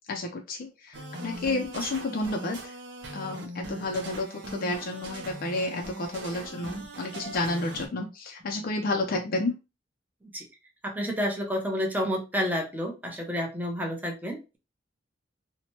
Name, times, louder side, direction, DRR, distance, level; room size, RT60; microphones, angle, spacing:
voice 1, 0.1-2.6 3.1-9.5, left 2 dB, 50° left, 2 dB, 0.4 m, -31 dB
sound 1, 0.9-7.9, right 2 dB, 65° right, 0.7 m, -40 dB
voice 2, 10.8-14.6, equal, 10° right, 0 dB, 0.6 m, -30 dB
2.8 x 2.1 x 2.9 m, 0.28 s
head